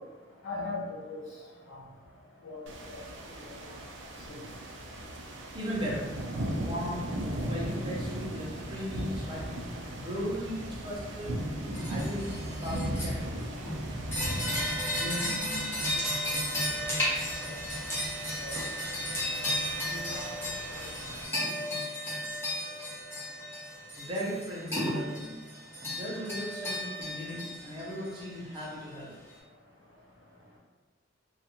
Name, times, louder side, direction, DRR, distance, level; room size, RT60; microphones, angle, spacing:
voice 1, 0.4-1.2 1.7-1.8 2.4-2.6 2.9-3.0 3.4-3.5 4.3-4.4 15.0-15.9 16.8-16.9 17.4-17.5 18.4-18.5 19.9-20.3, left 2 dB, 75° left, -6 dB, 0.9 m, -38 dB
sound 1, 2.7-21.2, right 1 dB, 70° right, 0.4 m, -38 dB
voice 2, 5.5-6.1 6.5-11.4 11.9-13.4 24.0-25.4 25.9-29.1, equal, 25° right, -5 dB, 0.6 m, -37 dB
sound 2, 11.7-13.1 13.6-28.6, equal, 15° left, 0.8 m, -34 dB
2.5 x 2.3 x 2.8 m, 1.2 s
head